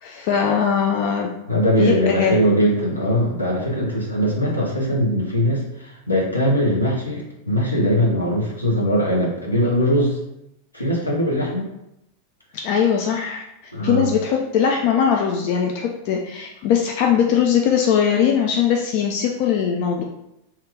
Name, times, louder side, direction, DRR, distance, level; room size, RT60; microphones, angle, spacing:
voice 1, 0.0-1.3 1.8-2.4 12.5-20.0, left 8 dB, 45° left, 1 dB, 0.3 m, -20 dB
voice 2, 1.5-10.2 10.7-11.7 13.7-14.1, equal, 85° left, -3 dB, 0.8 m, -21 dB
2.9 x 2.3 x 3.3 m, 0.83 s
figure-of-eight pair, 90°, 0 cm